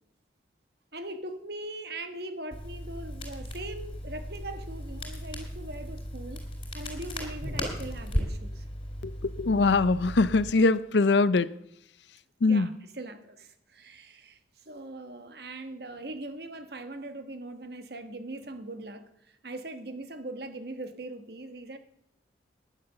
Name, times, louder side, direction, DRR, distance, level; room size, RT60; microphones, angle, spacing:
voice 1, 0.9-8.6 12.4-14.4 14.6-21.8, right 2 dB, 60° right, 1.3 m, -41 dB
Crackle, 2.5-10.5, equal, 30° left, 4.3 m, -36 dB
voice 2, 9.4-11.5 12.4-12.7, left 3 dB, 70° left, 0.6 m, -22 dB
11.0 x 11.0 x 6.7 m
head